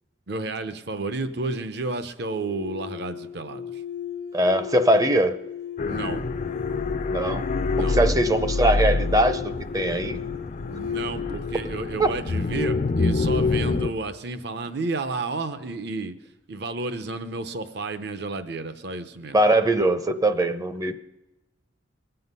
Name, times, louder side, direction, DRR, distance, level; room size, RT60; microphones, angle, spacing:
voice 1, 0.3-3.8 5.8-6.3 7.7-8.0 10.7-16.1 16.5-19.4, right 3 dB, 60° right, 10 dB, 0.8 m, -31 dB
sound 1, 2.2-13.2, left 8 dB, 75° left, 1.0 m, -36 dB
voice 2, 4.3-5.4 7.1-7.4 7.8-10.2 12.0-12.1 19.3-21.0, right 1 dB, 20° right, 10 dB, 0.5 m, -21 dB
sound 2, 5.8-13.9, left 3 dB, 40° left, 0.4 m, -26 dB
21.0 x 7.9 x 5.5 m, 0.97 s
head